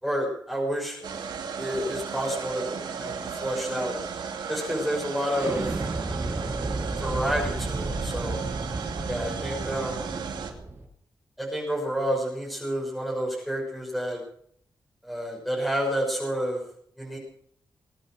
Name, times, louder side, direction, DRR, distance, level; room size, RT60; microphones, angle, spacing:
voice 1, 0.0-1.1 1.6-4.0 4.5-5.8 6.3-6.5 7.0-8.4 9.1-10.1 11.4-14.2 15.0-16.6 17.0-17.2, equal, ahead, -3 dB, 6.2 m, -29 dB
sound 1, 1.0-10.5, right 6 dB, 80° right, 2.7 m, -35 dB
Explosion, 5.3-10.8, right 2 dB, 30° right, 5.9 m, -32 dB
21.0 x 10.0 x 6.5 m, 0.64 s
cardioid pair, 95°, 8 cm